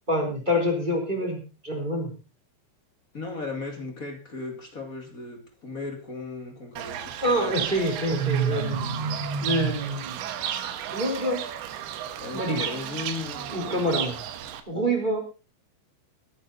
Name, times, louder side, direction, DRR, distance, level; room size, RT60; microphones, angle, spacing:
voice 1, 0.1-2.1 7.2-8.9 9.4-10.2 10.9-11.4 12.3-12.7 13.5-14.2 14.7-15.2, equal, 10° right, 2 dB, 3.5 m, -26 dB
voice 2, 3.1-7.7 12.2-13.9, left 3 dB, 35° left, 3 dB, 1.3 m, -36 dB
Fowl / Bird, 6.8-14.6, right 9 dB, 75° right, 3.5 m, -31 dB
22.5 x 9.1 x 4.1 m, 0.33 s
omnidirectional pair, 5.3 m